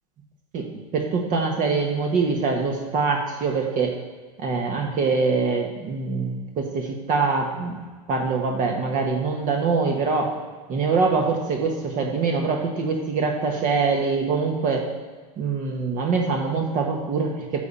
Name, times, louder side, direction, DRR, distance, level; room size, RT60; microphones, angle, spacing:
voice 1, 0.9-3.9 4.4-7.8 8.1-10.3 10.7-14.9 15.4-17.6, right 4 dB, 40° right, 1 dB, 1.3 m, -24 dB
9.5 x 7.1 x 4.3 m, 1.4 s
hypercardioid pair, 115°, 20 cm